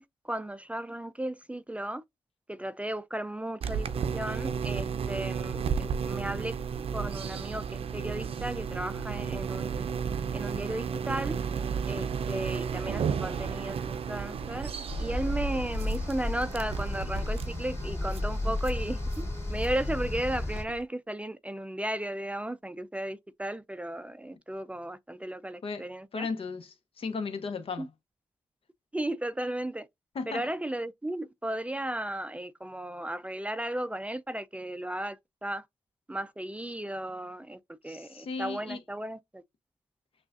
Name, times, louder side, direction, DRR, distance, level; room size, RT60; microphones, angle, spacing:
voice 1, 0.0-2.0 2.5-6.6 6.9-10.0 10.3-11.4 11.9-14.7 15.0-26.3 27.8-27.9 28.9-29.9 30.3-35.6 36.1-39.4, right 1 dB, 10° right, 0.4 m, -35 dB
sound 1, 3.6-20.8, right 6 dB, 65° right, 0.5 m, -33 dB
sound 2, 14.9-20.6, left 2 dB, 25° left, 2.3 m, -33 dB
voice 2, 26.1-27.9 30.1-30.4 37.8-38.8, left 4 dB, 65° left, 0.9 m, -36 dB
6.1 x 2.4 x 2.4 m
supercardioid pair, 50°, 11 cm